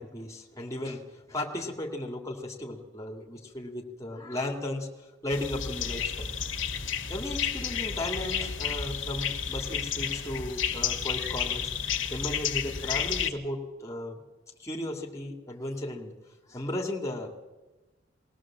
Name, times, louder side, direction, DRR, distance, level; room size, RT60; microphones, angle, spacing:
voice 1, 0.0-6.3 6.7-11.7 12.1-14.2 14.6-16.1 16.5-17.4, left 1 dB, 15° left, 1 dB, 2.5 m, -35 dB
sound 1, 5.3-13.3, left 7 dB, 75° left, 1.6 m, -31 dB
21.0 x 17.5 x 7.5 m, 1.1 s
head